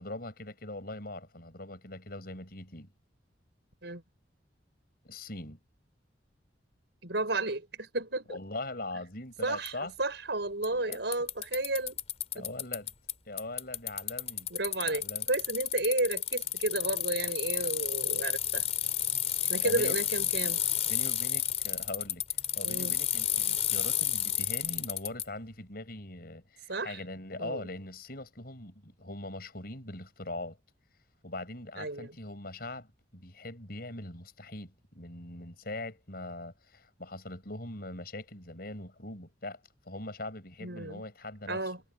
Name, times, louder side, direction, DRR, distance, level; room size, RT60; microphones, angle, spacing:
voice 1, 0.0-2.9 5.0-5.6 8.3-9.9 10.7-11.0 12.3-12.9 13.2-14.5 14.8-15.3 19.6-20.0 20.9-22.3 22.6-30.6 31.2-39.6 39.9-41.7, left 2 dB, 55° left, 6.6 m, -41 dB
voice 2, 7.0-8.4 9.4-12.0 12.4-12.5 14.5-18.7 19.5-20.6 22.6-22.9 26.7-27.0 27.4-27.6 31.8-32.2 40.6-41.0 41.5-41.8, right 2 dB, 65° right, 5.8 m, -32 dB
Bicycle, 9.6-9.7 10.6-10.7 10.9-13.1 13.4-25.2, left 10 dB, 35° left, 4.0 m, -31 dB
head